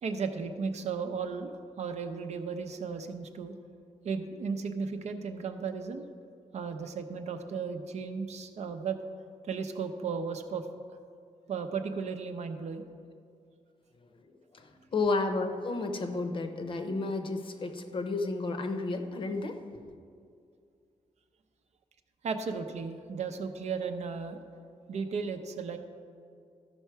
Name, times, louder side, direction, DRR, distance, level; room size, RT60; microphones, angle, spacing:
voice 1, 0.0-3.5 4.0-6.0 6.5-9.0 9.5-10.7 11.5-12.8 22.2-24.4 24.9-25.8, right 5 dB, 65° right, 7 dB, 0.7 m, -35 dB
voice 2, 14.5-19.9, left 3 dB, 40° left, 6 dB, 0.7 m, -32 dB
13.0 x 5.5 x 4.6 m, 2.3 s
wide cardioid pair, 135°, 13 cm